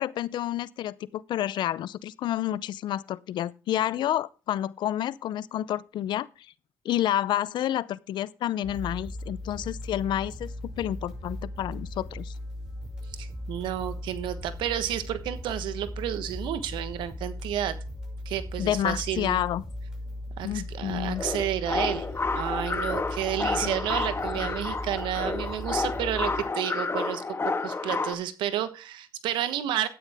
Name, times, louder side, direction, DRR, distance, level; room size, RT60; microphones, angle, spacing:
voice 1, 0.0-6.3 6.8-12.3 18.6-19.7 20.4-21.2 23.6-23.7 24.3-24.5, left 12 dB, 75° left, 0.6 m, -29 dB
sound 1, 8.6-26.5, left 1 dB, 10° right, 5.9 m, -38 dB
voice 2, 13.1-17.8 18.2-19.4 20.4-22.1 22.3-27.2 27.6-29.9, right 11 dB, 85° right, 1.2 m, -31 dB
sound 2, 21.1-28.1, left 3 dB, 30° left, 1.5 m, -30 dB
12.5 x 9.2 x 3.5 m
supercardioid pair, 65°, 8 cm